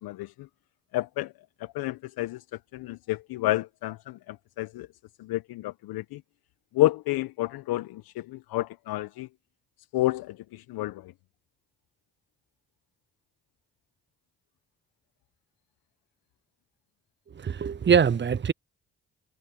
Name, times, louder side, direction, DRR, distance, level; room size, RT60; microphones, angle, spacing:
voice 1, 0.0-0.5 0.9-1.3 1.6-2.4 2.7-4.9 5.2-6.2 6.7-9.3 9.9-11.1, left 17 dB, 75° left, 1.2 m, -30 dB
voice 2, 17.3-18.5, right 7 dB, 30° right, 0.7 m, -23 dB
hypercardioid pair, 40°, 37 cm